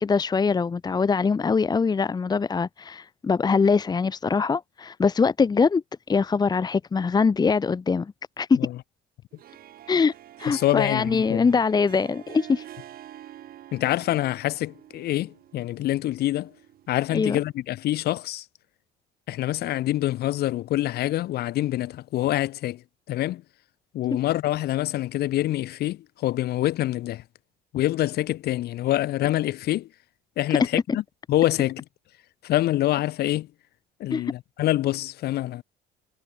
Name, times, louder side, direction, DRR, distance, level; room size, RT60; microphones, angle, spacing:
voice 1, 0.0-5.8 6.1-8.6 9.9-10.1 10.4-12.6 17.1-17.4 34.1-34.3, left 5 dB, 25° left, 1.2 m, -23 dB
Harp, 9.3-17.6, right 12 dB, 55° right, 7.7 m, -47 dB
voice 2, 10.5-11.5 13.7-16.5 16.9-18.4 19.3-22.8 23.1-23.4 23.9-27.2 27.7-29.9 30.4-31.0 31.3-31.8 32.4-33.5 34.0-35.6, left 14 dB, 65° left, 7.8 m, -26 dB
supercardioid pair, 100°, 18 cm